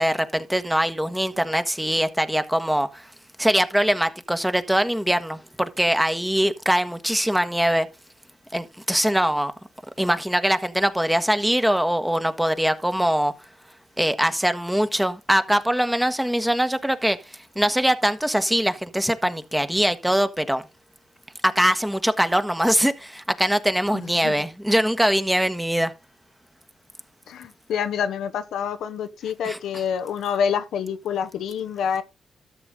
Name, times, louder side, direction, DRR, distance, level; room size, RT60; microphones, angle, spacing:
voice 1, 0.0-3.1 3.4-7.9 8.5-9.5 10.0-13.3 14.0-17.2 17.5-20.6 21.4-25.9 29.4-29.6, equal, 5° right, 1.3 m, -22 dB
voice 2, 23.9-24.5 27.3-32.0, left 7 dB, 85° left, 0.9 m, -27 dB
13.0 x 6.9 x 3.8 m
supercardioid pair, 60°, 0 cm